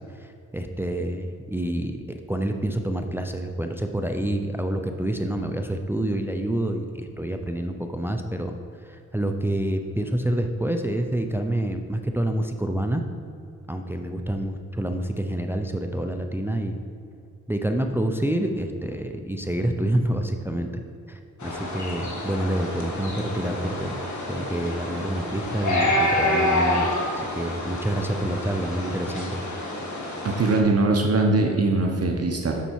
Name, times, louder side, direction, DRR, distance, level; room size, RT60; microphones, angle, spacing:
voice 1, 0.1-2.0 2.3-13.0 13.7-16.7 17.5-20.7 21.1-24.0 24.3-26.9 27.1-29.4, right 1 dB, 5° right, 5 dB, 0.5 m, -27 dB
sound 1, 21.4-30.6, left 1 dB, 75° left, 1.5 m, -28 dB
voice 2, 30.2-32.6, right 3 dB, 55° right, 2 dB, 0.9 m, -21 dB
7.1 x 6.8 x 4.6 m, 2.4 s
cardioid pair, 75°, 30 cm